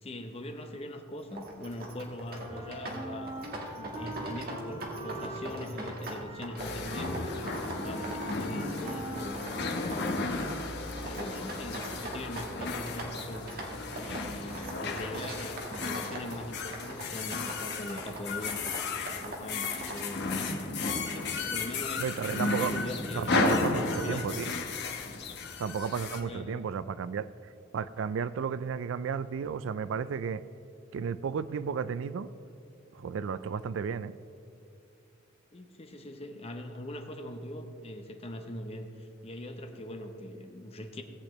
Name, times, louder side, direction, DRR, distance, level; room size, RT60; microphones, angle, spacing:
voice 1, 0.0-3.3 3.8-10.6 11.0-18.6 19.1-20.6 21.0-22.1 22.4-24.5 26.2-26.7 35.5-41.0, left 1 dB, 30° left, 5 dB, 0.8 m, -41 dB
sound 1, 1.2-20.1, right 1 dB, 50° right, 1.6 m, -42 dB
Wind instrument woodwind instrument, 2.4-10.5, right 1 dB, 25° right, 0.9 m, -43 dB
sound 2, 6.6-26.2, left 3 dB, 55° left, 1.0 m, -34 dB
voice 2, 22.0-22.7 23.1-24.5 25.6-27.3 27.7-30.4 30.9-32.3 32.9-34.1, right 6 dB, 65° right, 16 dB, 0.3 m, -33 dB
17.5 x 8.4 x 3.1 m, 2.6 s
head